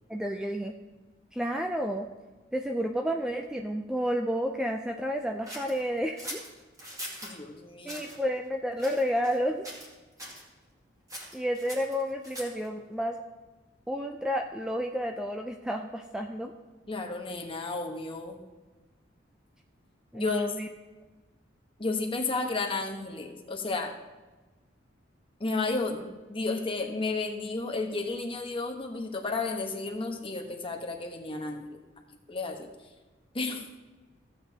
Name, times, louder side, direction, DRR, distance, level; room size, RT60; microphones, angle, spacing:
voice 1, 0.1-0.7 1.3-2.1 2.5-6.4 7.8-9.6 11.3-13.2 13.9-16.5 20.1-20.7, equal, 5° right, 3 dB, 0.4 m, -31 dB
sound 1, 5.5-7.4 7.8-8.2 8.8-9.4 9.6-9.9 10.2-10.4 11.1-12.7, equal, 20° right, 2.2 m, -42 dB
voice 2, 7.2-8.0 16.9-18.4 20.1-20.4 21.8-23.9 25.4-31.7 32.3-32.7 33.3-33.6, left 3 dB, 30° left, 3 dB, 1.1 m, -32 dB
15.0 x 8.0 x 2.8 m, 1.2 s
head